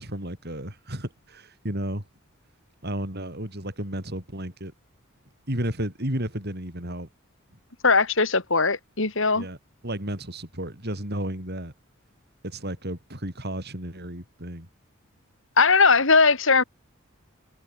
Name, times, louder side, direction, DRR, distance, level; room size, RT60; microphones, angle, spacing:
voice 1, 0.0-2.0 2.8-4.7 5.5-7.1 9.3-9.6 9.8-11.7 12.4-14.7, right 1 dB, 50° right, 7.7 m, -32 dB
voice 2, 7.8-9.5 15.6-16.6, left 4 dB, 65° left, 3.8 m, -19 dB
head